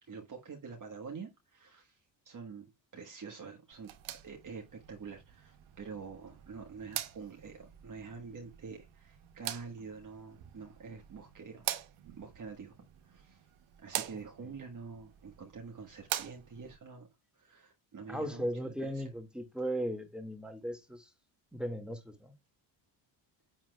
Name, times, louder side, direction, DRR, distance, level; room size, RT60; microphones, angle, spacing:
voice 1, 0.0-3.9 4.2-11.7 12.2-12.8 13.0-13.5 13.8-17.1 17.3-19.0, right 5 dB, 40° right, 1.3 m, -47 dB
sound 1, 3.7-16.8, right 13 dB, 75° right, 1.0 m, -44 dB
voice 2, 14.1-14.5 18.1-21.1 21.5-22.3, equal, ahead, 1.7 m, -37 dB
7.3 x 6.3 x 2.2 m
supercardioid pair, 75°, 49 cm